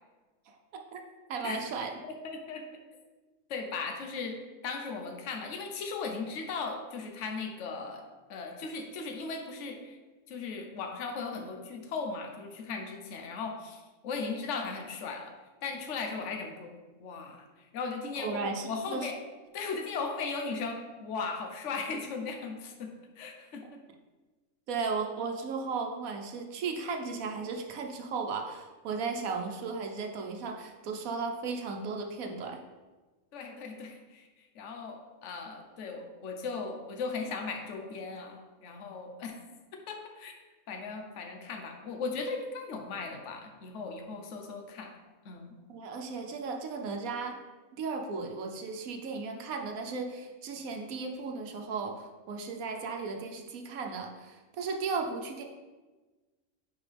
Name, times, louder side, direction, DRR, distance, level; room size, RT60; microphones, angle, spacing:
voice 1, 1.3-2.0 18.2-19.1 24.7-32.6 45.7-47.4 47.7-55.4, right 4 dB, 90° right, 3 dB, 1.2 m, -35 dB
voice 2, 2.2-2.6 3.5-8.0 8.3-10.0 10.3-15.3 15.6-16.7 17.0-19.2 19.5-23.8 33.3-39.4 39.9-40.3 40.7-44.9 45.2-45.5, left 4 dB, 60° left, 3 dB, 1.1 m, -37 dB
9.8 x 4.6 x 3.4 m, 1.3 s
omnidirectional pair, 1.4 m